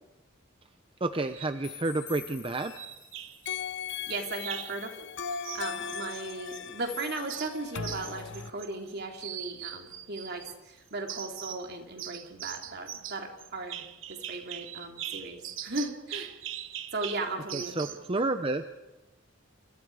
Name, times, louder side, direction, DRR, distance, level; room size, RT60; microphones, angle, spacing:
voice 1, 1.0-2.7 17.5-18.6, right 2 dB, 25° right, 9 dB, 0.8 m, -30 dB
sound 1, 1.2-1.6 2.8-3.6 4.4-4.8 5.4-6.7 7.0-8.9 9.2-10.6 11.1-11.7 12.0-18.1, right 11 dB, 80° right, 1.2 m, -41 dB
sound 2, 1.6-3.0 3.5-8.5, left 7 dB, 65° left, 0.8 m, -39 dB
voice 2, 4.1-5.1 5.5-16.3 16.9-17.9, right 2 dB, 55° right, 3 dB, 3.4 m, -37 dB
29.0 x 28.0 x 4.9 m, 1.0 s
head